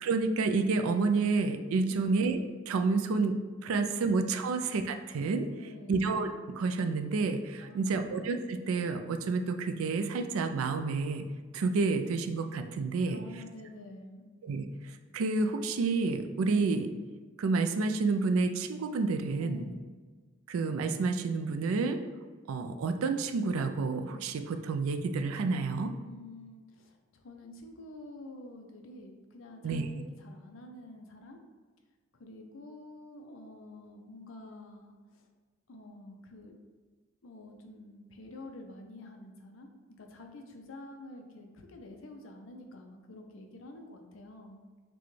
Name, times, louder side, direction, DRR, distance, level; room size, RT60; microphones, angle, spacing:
voice 1, 0.0-2.4 2.7-5.5 5.9-6.3 6.6-11.2 11.5-13.2 14.4-14.6 15.1-16.9 17.4-19.6 20.5-22.0 22.5-25.9 29.6-29.9, right 4 dB, 85° right, 7 dB, 0.4 m, -29 dB
voice 2, 5.6-6.1 7.6-8.1 13.1-14.2 19.4-19.8 26.0-31.4 32.1-35.3 35.7-36.5 37.2-39.7 40.0-44.6, left 1 dB, 70° left, 3 dB, 0.6 m, -48 dB
6.0 x 2.2 x 3.2 m, 1.4 s
head